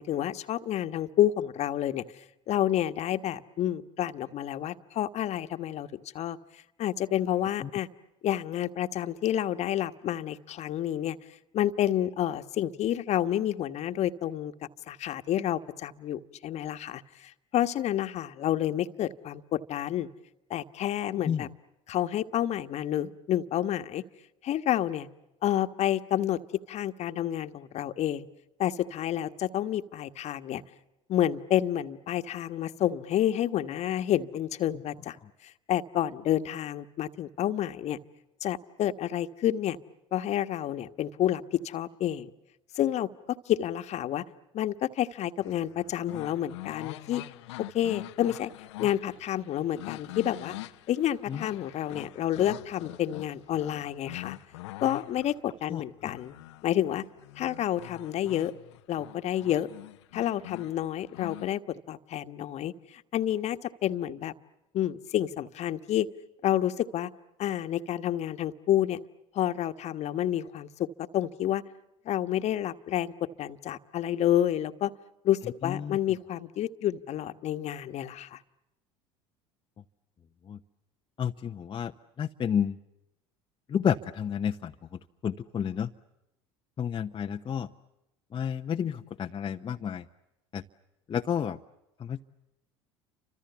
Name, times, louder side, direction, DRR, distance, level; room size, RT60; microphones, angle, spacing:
voice 1, 0.0-2.0 2.5-6.4 6.8-7.9 8.2-11.2 11.5-14.5 14.9-20.1 20.5-21.5 21.9-24.0 24.4-25.1 25.4-26.4 26.7-28.3 28.6-30.6 31.1-35.2 35.4-38.0 38.4-39.8 40.1-42.3 42.7-44.2 44.5-47.2 47.7-48.5 48.8-50.6 50.9-54.4 54.8-56.4 56.6-57.0 57.4-58.5 58.9-59.7 60.1-64.3 64.7-66.1 66.4-67.1 67.4-69.0 69.3-70.7 71.1-71.6 72.0-73.1 73.4-74.9 75.2-78.4, left 11 dB, 50° left, 9 dB, 1.5 m, -29 dB
sound 1, 45.4-61.5, left 18 dB, 75° left, 0.9 m, -44 dB
voice 2, 55.7-56.1 75.6-76.0 80.5-80.6 81.2-81.9 82.2-82.8 83.7-84.7 85.2-85.9 86.8-87.7 88.3-90.0 90.5-90.6 91.1-91.6 92.0-92.2, left 8 dB, 35° left, 4 dB, 0.9 m, -30 dB
29.5 x 26.0 x 7.1 m, 0.91 s
hypercardioid pair, 75°, 14 cm